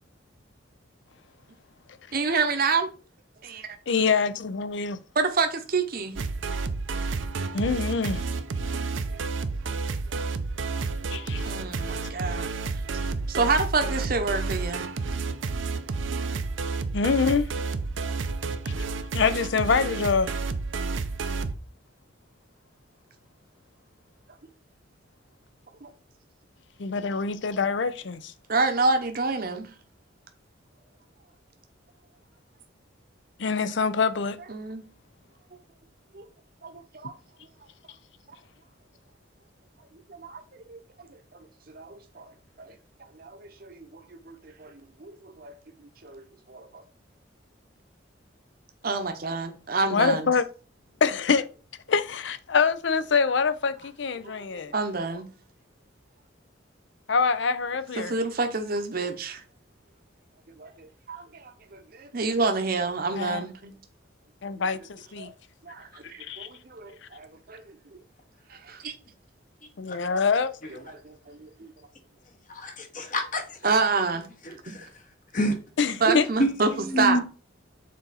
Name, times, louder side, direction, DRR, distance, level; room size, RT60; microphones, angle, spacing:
voice 1, 2.1-2.9 3.4-3.7 5.1-6.1 9.1-9.2 10.1-10.3 11.1-12.5 13.3-14.8 25.8-25.9 28.5-29.7 34.5-34.8 36.1-36.3 36.6-37.1 40.1-40.8 41.7-42.3 42.6-42.7 43.1-44.7 45.0-45.5 46.0-46.8 48.8-50.3 54.2-55.3 58.0-59.4 60.6-63.7 65.2-65.3 65.6-67.7 68.5-68.9 71.0-71.7 73.6-74.3 74.7-74.8 76.0-76.7 77.0-77.2, right 4 dB, 50° right, 0.8 m, -28 dB
voice 2, 3.9-5.0 7.5-8.2 11.1-11.5 16.9-17.5 18.7-18.8 19.1-20.4 26.8-28.3 33.4-34.4 49.9-50.5 51.0-51.5 51.9-54.7 57.1-58.2 63.1-63.5 64.4-65.3 66.2-66.5 69.8-70.5 75.8-76.3, left 5 dB, 65° left, 0.5 m, -25 dB
sound 1, 6.2-21.5, right 4 dB, 75° right, 0.6 m, -30 dB
voice 3, 72.5-73.6 74.5-74.9 75.3-75.6 76.1-77.2, equal, 40° left, 1.1 m, -27 dB
6.4 x 4.0 x 4.1 m
head